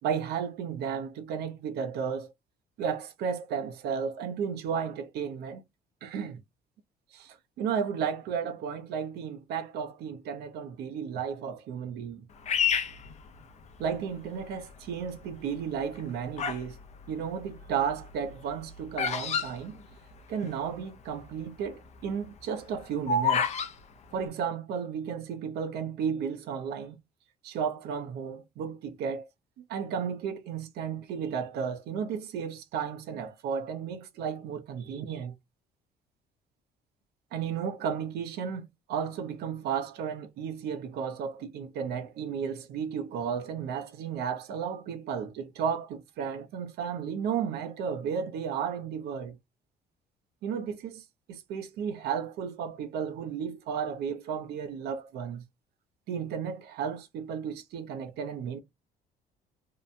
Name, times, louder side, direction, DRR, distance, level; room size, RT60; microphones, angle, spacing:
voice 1, 0.0-2.3 2.8-5.6 6.0-6.4 7.1-12.2 13.8-16.8 17.1-19.8 20.3-23.5 24.1-27.0 27.4-29.3 29.6-35.3 37.3-49.4 50.4-55.4 56.1-58.6, right 7 dB, 75° right, 0.6 m, -33 dB
Bird vocalization bird call bird song, 12.4-14.0 14.6-15.0 15.8-16.7 17.0-20.5 20.8-20.9 21.0-21.4 21.8-23.7, left 6 dB, 40° left, 0.5 m, -29 dB
2.8 x 2.1 x 2.5 m
cardioid pair, 110°, 17 cm